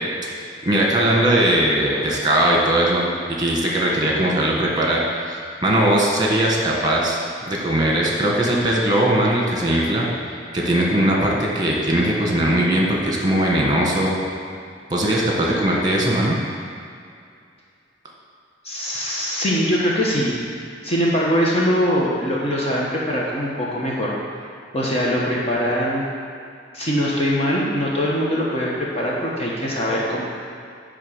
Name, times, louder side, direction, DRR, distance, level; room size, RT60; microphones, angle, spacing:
voice 1, 0.6-3.0 3.4-5.0 5.3-7.2 7.5-10.1 10.5-14.2 14.9-16.4, right 1 dB, 25° right, -2 dB, 1.6 m, -19 dB
voice 2, 18.6-20.4 20.8-24.1 24.7-26.0 26.7-30.2, equal, 35° left, -5 dB, 1.2 m, -22 dB
10.0 x 3.7 x 7.3 m, 2.4 s
head